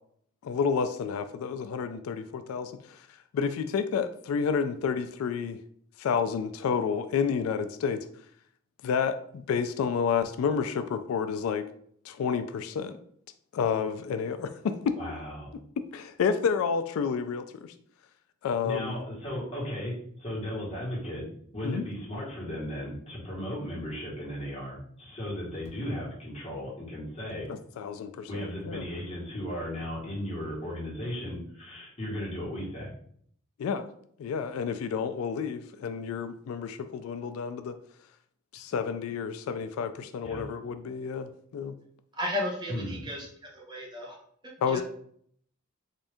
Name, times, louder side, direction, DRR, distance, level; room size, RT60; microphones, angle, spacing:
voice 1, 0.4-3.0 3.3-5.6 6.0-8.1 8.8-11.7 12.1-13.0 13.5-14.8 15.9-17.7 18.4-19.0 21.6-21.8 27.5-28.8 33.6-33.9 34.2-37.8 38.5-41.7 44.6-44.8, left 6 dB, 85° left, 11 dB, 0.3 m, -30 dB
voice 2, 15.0-15.5 18.6-21.2 21.5-27.5 28.3-32.9 40.2-40.5 42.7-43.1, equal, 30° left, -5 dB, 1.3 m, -36 dB
voice 3, 42.2-43.3 43.5-44.2 44.7-44.8, left 1 dB, 20° right, -2 dB, 0.9 m, -33 dB
3.6 x 2.6 x 3.4 m, 0.64 s
head